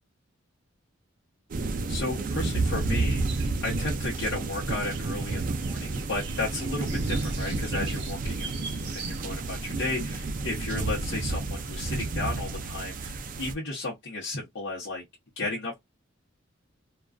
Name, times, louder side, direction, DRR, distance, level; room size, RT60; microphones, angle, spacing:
sound 1, 1.5-13.5, right 3 dB, 45° right, 0.4 m, -30 dB
voice 1, 1.7-8.6 8.9-15.0 15.4-15.8, left 2 dB, 65° left, 0.8 m, -34 dB
sound 2, 2.9-9.6 10.1-10.2 11.0-11.3 11.5-11.9, right 5 dB, 60° right, 1.0 m, -44 dB
2.4 x 2.2 x 2.2 m
head